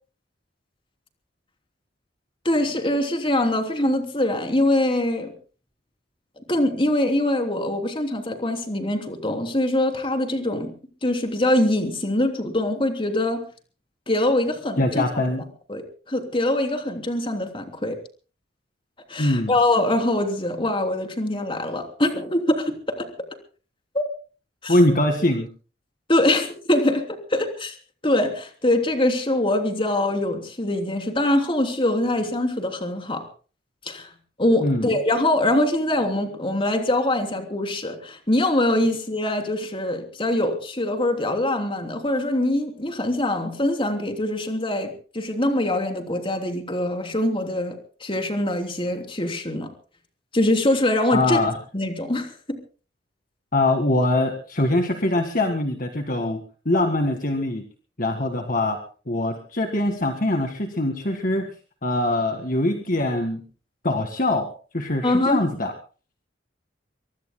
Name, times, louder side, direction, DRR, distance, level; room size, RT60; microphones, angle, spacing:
voice 1, 2.4-5.3 6.5-10.7 11.0-13.4 14.1-15.0 15.7-18.0 19.1-23.1 23.9-24.0 24.6-24.8 26.1-27.7 28.0-33.2 33.8-34.1 34.4-49.7 50.3-51.4 51.7-52.6 65.0-65.4, left 1 dB, 30° left, 5 dB, 3.2 m, -23 dB
voice 2, 14.8-15.4 19.2-19.5 24.7-25.5 34.6-34.9 51.1-51.5 53.5-56.4 56.7-57.6 58.0-58.8 59.1-61.5 61.8-63.4 63.8-64.5 64.7-65.7, left 1 dB, 50° left, 4 dB, 1.9 m, -22 dB
24.0 x 22.0 x 2.2 m, 0.38 s
head